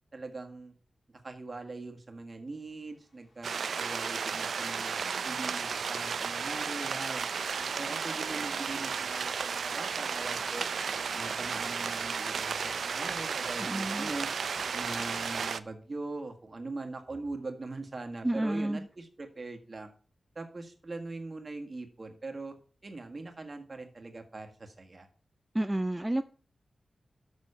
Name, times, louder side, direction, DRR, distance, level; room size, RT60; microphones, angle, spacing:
voice 1, 0.1-0.7 1.1-5.0 5.2-7.3 7.6-10.7 11.1-14.3 14.7-19.9 20.3-22.5 22.8-25.1, right 3 dB, 45° right, 4 dB, 1.7 m, -41 dB
sound 1, 2.9-15.5, left 1 dB, 60° left, 2.7 m, -54 dB
sound 2, 3.4-15.6, right 6 dB, 85° right, 0.4 m, -33 dB
voice 2, 13.6-14.1 18.2-18.9 25.5-26.2, right 1 dB, 20° right, 10 dB, 0.4 m, -30 dB
6.8 x 6.2 x 5.5 m, 0.40 s
cardioid pair, 50°, 0 cm